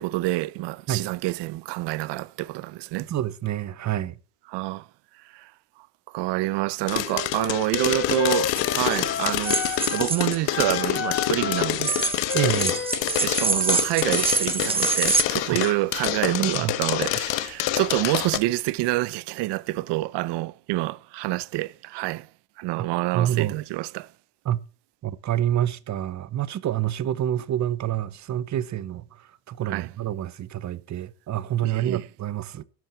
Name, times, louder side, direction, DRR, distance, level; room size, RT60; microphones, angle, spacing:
voice 1, 0.0-3.1 4.5-4.9 5.2-5.5 6.1-12.0 13.2-22.3 22.6-24.1 29.7-29.9 31.6-32.0, right 19 dB, 65° right, 0.7 m, -27 dB
voice 2, 3.0-4.2 12.3-12.8 15.5-15.6 16.3-16.7 22.8-22.9 23.1-23.6 24.4-24.6 25.0-32.6, right 11 dB, 40° right, 0.9 m, -27 dB
sound 1, 6.9-18.4, left 15 dB, 70° left, 1.4 m, -27 dB
Wind instrument woodwind instrument, 7.0-10.1 10.5-13.9, left 6 dB, 25° left, 1.7 m, -32 dB
sound 2, 8.5-8.6 9.4-10.4 11.8-15.2, right 4 dB, 10° right, 1.0 m, -25 dB
12.5 x 11.0 x 4.4 m
cardioid pair, 140°, 46 cm